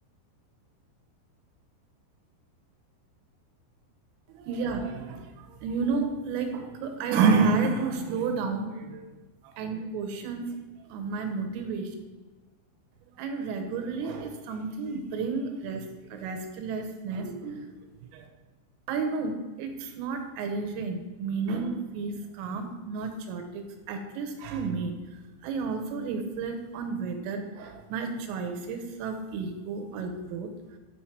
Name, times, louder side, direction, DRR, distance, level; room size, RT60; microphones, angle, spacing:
voice 1, 4.4-9.0 9.6-10.4 10.9-11.9 13.2-15.9 16.1-17.7 18.1-18.3 18.9-23.6 23.9-24.9 25.4-30.5, right 4 dB, 85° right, 5 dB, 3.4 m, -31 dB
9.0 x 4.6 x 4.5 m, 1.2 s
omnidirectional pair, 5.9 m